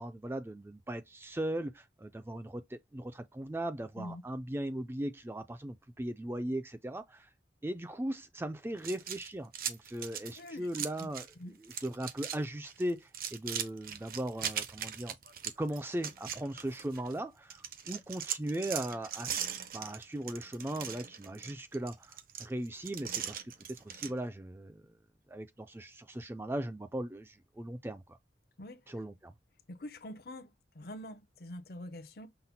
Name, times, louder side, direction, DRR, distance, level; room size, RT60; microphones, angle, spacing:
voice 1, 0.0-7.3 7.6-11.3 11.6-15.2 15.6-19.4 19.7-23.4 23.7-24.9 25.3-28.2 28.9-29.3, right 1 dB, 10° right, 0.3 m, -38 dB
sound 1, 8.8-11.3 11.6-12.4 12.7-17.1 17.5-24.1, right 9 dB, 50° right, 0.6 m, -40 dB
voice 2, 10.4-11.1 11.4-11.5 28.6-28.8 29.7-32.3, left 1 dB, 55° left, 0.6 m, -45 dB
5.8 x 2.1 x 4.0 m
head